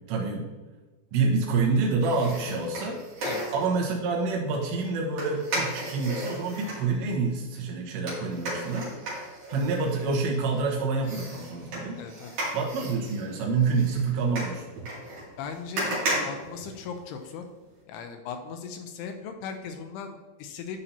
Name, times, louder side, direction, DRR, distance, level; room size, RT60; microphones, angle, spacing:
voice 1, 0.1-0.5 1.1-3.0 3.5-8.9 9.5-12.0 12.5-14.7, right 4 dB, 85° right, -2 dB, 3.6 m, -27 dB
sound 1, 2.0-3.8 5.2-6.8 8.1-10.6 11.0-17.3 17.6-17.7, right 1 dB, 50° right, 3.7 m, -34 dB
voice 2, 12.0-12.3 15.4-17.4 17.9-20.8, left 6 dB, 80° left, 6 dB, 2.5 m, -38 dB
12.0 x 5.4 x 2.9 m, 1.3 s
omnidirectional pair, 5.0 m